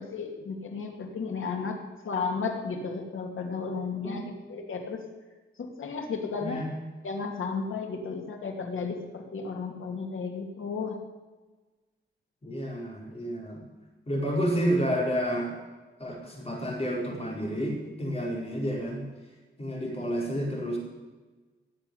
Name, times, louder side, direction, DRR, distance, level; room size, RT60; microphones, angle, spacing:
voice 1, 0.0-1.8 2.0-5.0 5.6-6.6 7.0-11.0, left 4 dB, 90° left, 3 dB, 2.6 m, -33 dB
voice 2, 12.4-13.6 14.1-15.5 16.0-19.0 19.6-20.8, equal, 30° left, -2 dB, 4.9 m, -30 dB
18.5 x 7.5 x 9.9 m, 1.2 s
wide cardioid pair, 140°, 20 cm